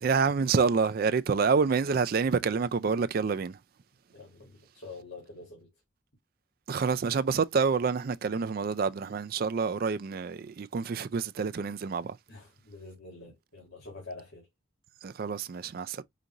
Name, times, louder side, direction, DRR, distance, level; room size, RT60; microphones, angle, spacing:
voice 1, 0.0-3.6 6.7-12.2 15.0-16.0, right 5 dB, 50° right, 0.3 m, -27 dB
voice 2, 4.1-5.7 12.3-14.5, left 3 dB, 70° left, 1.7 m, -46 dB
5.1 x 2.6 x 2.8 m
head